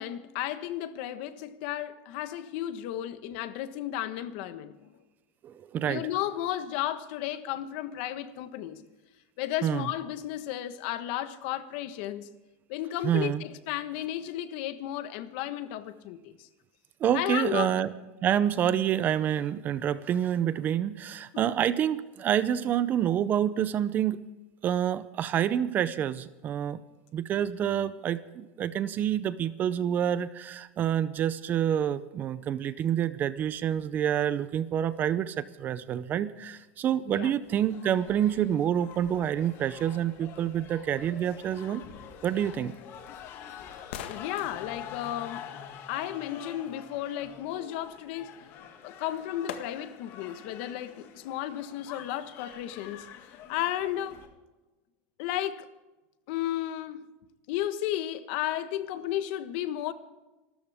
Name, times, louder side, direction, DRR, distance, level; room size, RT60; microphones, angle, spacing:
voice 1, 0.0-4.9 5.8-8.8 9.4-12.3 12.7-16.5 17.1-17.7 21.3-21.5 37.1-37.3 44.0-45.6 45.9-48.4 48.8-54.2 55.2-55.7 56.3-57.1 57.5-59.9, left 12 dB, 65° left, 1.3 m, -33 dB
voice 2, 5.4-6.0 9.6-9.9 13.0-13.4 17.0-17.9 18.2-24.2 24.6-26.8 27.1-41.8 42.2-42.8, right 10 dB, 30° right, 0.6 m, -27 dB
sound 1, 37.4-54.3, left 8 dB, 45° left, 2.3 m, -47 dB
sound 2, 49.5-50.2 50.7-50.8, left 9 dB, 90° left, 1.7 m, -46 dB
26.5 x 13.5 x 3.6 m
supercardioid pair, 150°, 6 cm